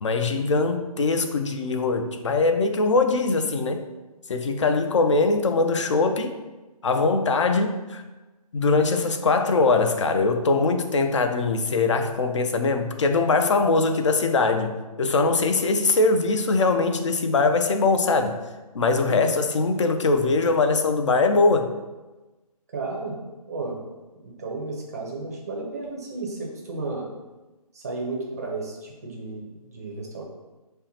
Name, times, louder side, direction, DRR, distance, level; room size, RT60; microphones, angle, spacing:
voice 1, 0.0-3.8 4.3-6.3 6.8-8.0 8.5-18.4 18.7-21.7, left 3 dB, 50° left, 6 dB, 0.4 m, -22 dB
voice 2, 22.7-23.2 23.5-23.8 24.2-27.1 27.7-30.2, right 3 dB, 25° right, -1 dB, 0.5 m, -33 dB
5.2 x 2.1 x 2.8 m, 1.1 s
figure-of-eight pair, 155°, 20 cm